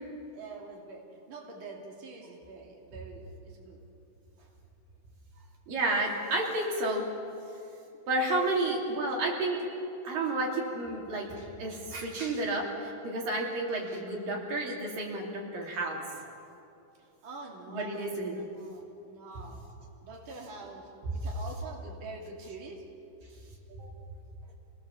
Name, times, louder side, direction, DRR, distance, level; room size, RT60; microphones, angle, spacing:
voice 1, 0.3-3.9 17.0-19.7 20.0-22.8, right 3 dB, 35° right, -1 dB, 3.1 m, -46 dB
voice 2, 5.7-7.1 8.1-9.7 10.0-16.2 17.7-18.4 23.7-23.9, right 2 dB, 80° right, -1 dB, 4.6 m, -31 dB
28.5 x 18.5 x 7.3 m, 2.7 s
omnidirectional pair, 3.9 m